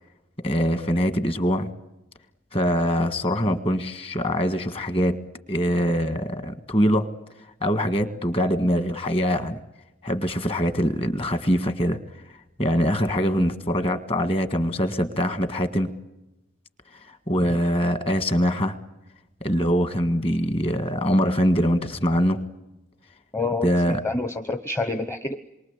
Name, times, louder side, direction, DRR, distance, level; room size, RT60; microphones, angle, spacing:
voice 1, 0.4-1.7 2.5-7.1 7.6-9.6 10.0-12.0 12.6-15.9 17.1-18.8 19.4-22.4 23.6-24.0, equal, 30° left, 10 dB, 1.7 m, -23 dB
voice 2, 23.3-25.3, left 3 dB, 15° left, 8 dB, 0.9 m, -28 dB
27.5 x 23.5 x 8.2 m, 0.96 s
head